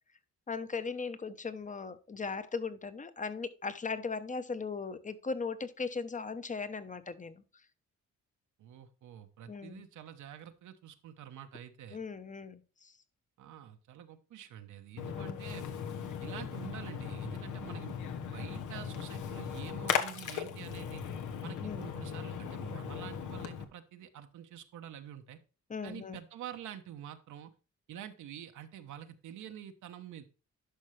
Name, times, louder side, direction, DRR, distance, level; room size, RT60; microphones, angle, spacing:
voice 1, 0.5-7.4 9.5-9.8 11.9-12.9 15.1-15.4 21.6-21.8 25.7-26.2, left 4 dB, 25° left, 13 dB, 0.9 m, -38 dB
voice 2, 8.6-12.0 13.4-15.7 16.2-17.9 18.3-21.0 21.4-25.4 25.8-27.5 27.9-30.2, right 10 dB, 75° right, 6 dB, 1.1 m, -47 dB
Splash splatter, 15.0-23.6, left 8 dB, 80° left, 1.2 m, -38 dB
11.5 x 5.4 x 3.2 m, 0.35 s
cardioid pair, 90°, 30 cm